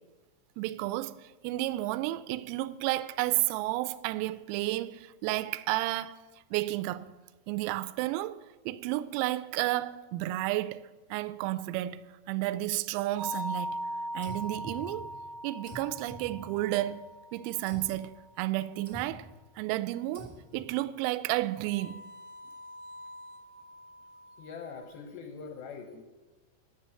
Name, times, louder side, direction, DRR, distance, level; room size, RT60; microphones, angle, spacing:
voice 1, 0.6-6.1 6.5-7.1 7.5-8.4 8.7-13.8 14.1-15.1 15.4-18.1 18.4-19.3 19.6-22.1, right 16 dB, 90° right, 3.2 m, -32 dB
sound 1, 13.2-18.1 21.6-24.8, equal, 75° right, 2.4 m, -41 dB
sound 2, 14.2-15.3 15.7-17.0 17.7-18.1 18.8-19.4 20.1-20.8, equal, 30° right, 0.8 m, -48 dB
voice 2, 24.4-26.0, left 5 dB, 80° left, 2.5 m, -43 dB
10.5 x 9.5 x 7.5 m
omnidirectional pair, 5.9 m